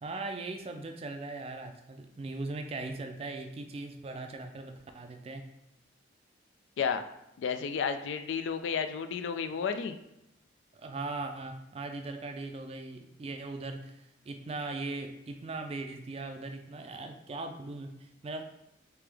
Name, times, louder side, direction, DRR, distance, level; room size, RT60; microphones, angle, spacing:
voice 1, 0.0-5.5 10.7-18.4, right 3 dB, 30° right, 6 dB, 0.3 m, -39 dB
voice 2, 7.4-10.0, left 6 dB, 75° left, 9 dB, 0.3 m, -32 dB
3.4 x 2.9 x 3.4 m, 0.84 s
head